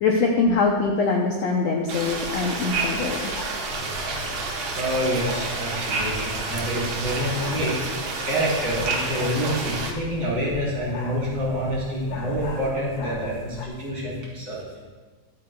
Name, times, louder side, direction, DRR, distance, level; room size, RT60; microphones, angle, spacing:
voice 1, 0.0-3.3, left 4 dB, 75° left, 0 dB, 1.5 m, -23 dB
sound 1, 1.9-9.9, right 3 dB, 65° right, 1.2 m, -29 dB
sound 2, 2.1-13.7, left 4 dB, 60° left, 1.9 m, -39 dB
voice 2, 4.7-7.7 8.2-14.6, equal, 30° right, -7 dB, 4.4 m, -27 dB
22.0 x 8.6 x 2.4 m, 1.4 s
omnidirectional pair, 4.0 m